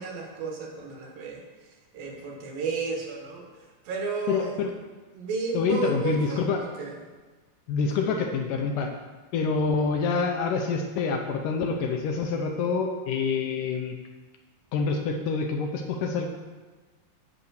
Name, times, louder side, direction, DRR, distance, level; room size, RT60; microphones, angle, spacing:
voice 1, 0.0-1.4 1.9-3.5 3.8-4.5 5.1-7.0 8.0-8.1, right 5 dB, 75° right, 0 dB, 3.1 m, -32 dB
voice 2, 4.3-4.7 5.5-6.6 7.7-8.9 9.3-14.0 14.7-16.3, left 5 dB, 75° left, 3 dB, 2.1 m, -26 dB
8.8 x 6.7 x 6.3 m, 1.3 s
omnidirectional pair, 4.4 m